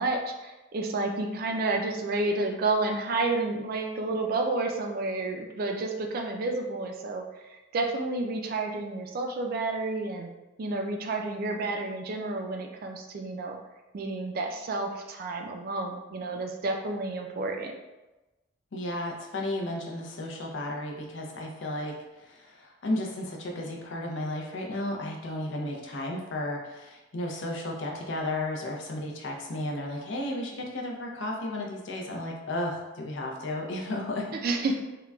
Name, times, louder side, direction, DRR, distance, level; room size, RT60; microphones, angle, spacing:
voice 1, 0.0-10.3 10.6-13.6 13.9-17.7 34.4-34.7, right 2 dB, 50° right, 3 dB, 0.3 m, -30 dB
voice 2, 18.7-34.3, left 1 dB, 65° left, 0 dB, 0.5 m, -33 dB
3.7 x 2.1 x 2.2 m, 1.1 s
head